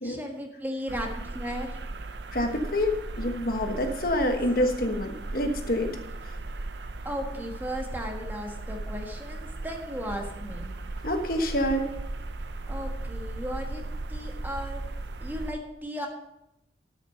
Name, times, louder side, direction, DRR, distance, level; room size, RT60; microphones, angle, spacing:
voice 1, 0.0-1.9 4.2-4.4 7.0-10.7 12.7-13.8 14.1-14.8 15.2-16.1, equal, 10° right, 2 dB, 1.4 m, -36 dB
sound 1, 0.9-15.5, right 2 dB, 85° right, 0.7 m, -37 dB
voice 2, 2.3-5.9 11.0-11.8, left 1 dB, 55° left, 4 dB, 1.3 m, -27 dB
12.5 x 6.4 x 5.5 m, 0.87 s
head